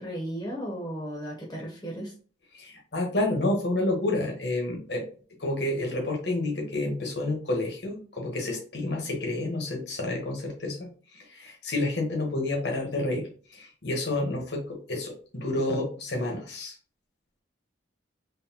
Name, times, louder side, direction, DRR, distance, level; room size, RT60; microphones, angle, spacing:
voice 1, 0.0-2.1, equal, 20° left, -2 dB, 1.1 m, -35 dB
voice 2, 2.5-5.0 5.4-16.8, left 2 dB, 60° left, 1 dB, 1.3 m, -29 dB
4.0 x 3.2 x 2.9 m, 0.41 s
head